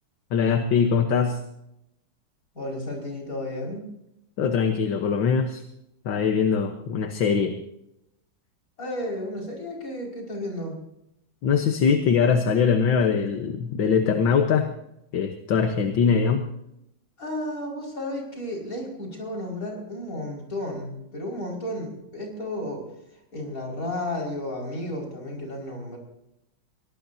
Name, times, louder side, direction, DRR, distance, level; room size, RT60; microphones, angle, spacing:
voice 1, 0.3-1.4 4.4-5.6 6.1-7.6 11.4-14.7 15.1-16.4, left 6 dB, 75° left, 5 dB, 1.9 m, -22 dB
voice 2, 2.5-3.9 8.8-10.8 17.2-22.8 23.3-26.0, left 1 dB, 45° left, -1 dB, 5.8 m, -33 dB
24.0 x 18.5 x 2.8 m, 0.83 s
omnidirectional pair, 2.1 m